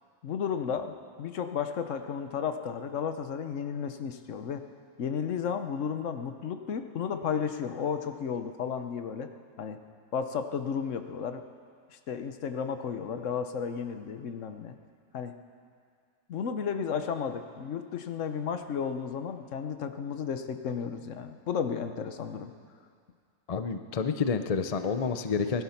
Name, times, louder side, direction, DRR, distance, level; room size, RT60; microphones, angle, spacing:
voice 1, 0.2-4.7 5.0-9.3 9.6-9.8 10.1-11.4 11.9-14.7 15.1-15.4 16.3-22.5, left 7 dB, 60° left, 8 dB, 1.2 m, -33 dB
voice 2, 23.5-25.6, left 5 dB, 45° left, 8 dB, 0.5 m, -29 dB
20.5 x 12.0 x 5.8 m, 2.2 s
omnidirectional pair, 1.5 m